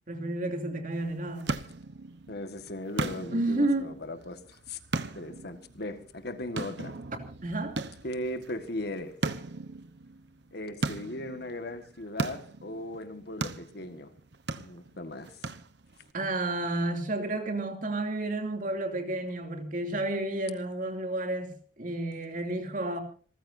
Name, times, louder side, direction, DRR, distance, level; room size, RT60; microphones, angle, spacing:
voice 1, 0.1-1.6 3.3-3.9 7.4-7.8 16.1-23.0, right 2 dB, 50° right, 2.8 m, -31 dB
sound 1, 0.9-16.1, right 3 dB, 70° right, 1.1 m, -38 dB
voice 2, 2.3-4.4 4.7-4.8 5.1-7.0 8.0-9.2 10.5-14.1 14.6-15.3, left 1 dB, 60° left, 1.7 m, -38 dB
27.5 x 14.5 x 2.7 m
head